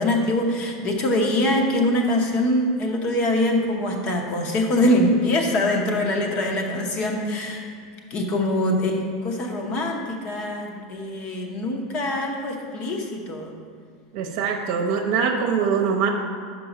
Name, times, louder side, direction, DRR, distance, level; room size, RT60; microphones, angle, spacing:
voice 1, 0.0-7.7 8.1-13.5, left 1 dB, 35° left, 2 dB, 0.9 m, -23 dB
voice 2, 14.1-16.1, right 6 dB, 55° right, 3 dB, 0.8 m, -23 dB
5.4 x 5.3 x 6.0 m, 2.1 s
supercardioid pair, 155°, 3 cm